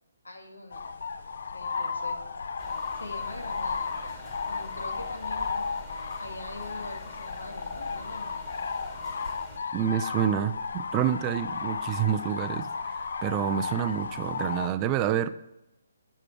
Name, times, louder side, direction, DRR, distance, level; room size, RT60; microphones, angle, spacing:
voice 1, 0.2-0.8 1.5-2.2 2.9-5.7 6.2-8.3, left 2 dB, 90° left, 4 dB, 1.5 m, -43 dB
sound 1, 0.7-14.7, left 5 dB, 65° left, 0.5 m, -34 dB
sound 2, 2.6-9.6, left 1 dB, 10° left, 1.7 m, -47 dB
voice 2, 9.7-12.9 13.2-15.3, right 10 dB, 25° right, 12 dB, 0.4 m, -28 dB
9.8 x 4.9 x 4.5 m, 0.88 s
figure-of-eight pair, 145°, 0 cm